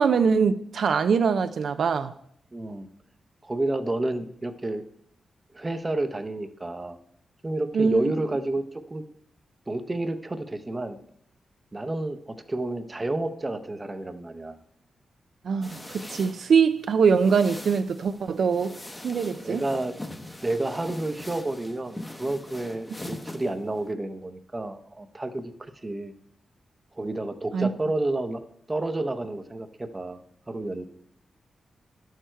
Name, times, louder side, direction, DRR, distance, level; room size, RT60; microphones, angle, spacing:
voice 1, 0.0-2.1 7.7-8.1 15.4-18.8 19.0-19.6 27.5-27.7, right 6 dB, 65° right, 0.4 m, -23 dB
voice 2, 2.5-2.9 3.4-4.8 5.5-7.0 7.4-9.0 9.7-11.0 11.7-14.6 19.4-20.0 20.4-26.1 26.9-28.4 28.7-30.2 30.5-30.9, right 2 dB, 20° right, 0.7 m, -30 dB
sound 1, 15.6-23.9, left 1 dB, 15° left, 0.8 m, -42 dB
11.5 x 6.5 x 4.5 m
wide cardioid pair, 115°, 0 cm